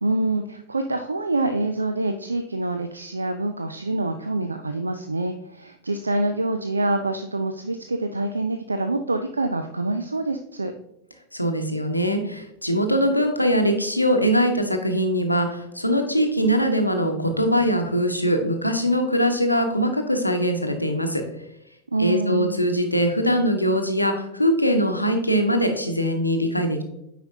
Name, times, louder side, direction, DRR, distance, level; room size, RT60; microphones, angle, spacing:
voice 1, 0.0-10.7 21.9-22.6, right 2 dB, 80° right, 7 dB, 0.4 m, -26 dB
voice 2, 11.3-21.2 22.0-26.8, equal, 85° left, 5 dB, 0.8 m, -22 dB
8.9 x 5.0 x 2.7 m, 0.80 s
figure-of-eight pair, 90°, 0 cm